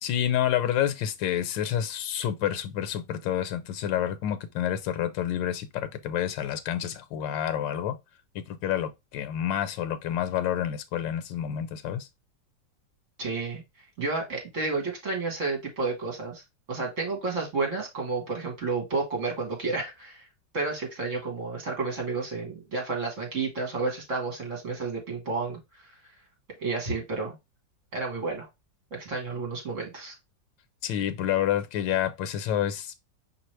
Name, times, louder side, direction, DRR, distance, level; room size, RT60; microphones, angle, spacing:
voice 1, 0.0-8.0 8.3-12.1 30.8-32.9, left 10 dB, 90° left, 1.4 m, -28 dB
voice 2, 13.2-13.6 14.0-16.4 16.7-20.3 20.5-25.6 26.6-27.4 27.9-28.5 28.9-30.1, right 3 dB, 45° right, 1.8 m, -31 dB
5.1 x 3.2 x 3.1 m
omnidirectional pair, 2.0 m